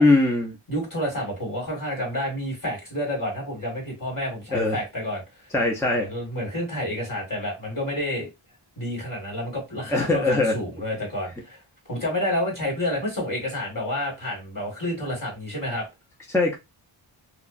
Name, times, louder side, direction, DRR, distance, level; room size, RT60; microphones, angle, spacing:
voice 1, 0.0-0.5 4.5-4.8 5.5-6.1 9.9-10.6 16.3-16.6, left 2 dB, 5° left, 0.5 m, -21 dB
voice 2, 0.7-5.2 6.0-8.3 8.8-11.6 11.9-15.9, left 1 dB, 40° left, 1.8 m, -29 dB
2.8 x 2.2 x 2.5 m
wide cardioid pair, 45°, 49 cm